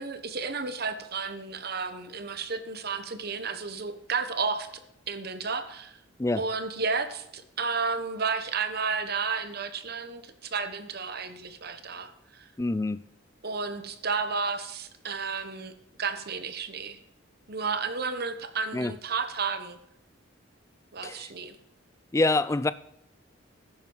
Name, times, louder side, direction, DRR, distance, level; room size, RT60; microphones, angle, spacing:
voice 1, 0.0-4.7 5.1-6.0 6.4-12.5 13.4-15.7 16.0-17.0 17.5-19.8 20.9-21.6, right 5 dB, 50° right, 10 dB, 1.1 m, -32 dB
voice 2, 12.6-13.0 18.7-18.9 21.0-21.3 22.1-22.7, left 2 dB, 15° left, 15 dB, 0.4 m, -25 dB
13.5 x 10.5 x 4.7 m, 0.80 s
head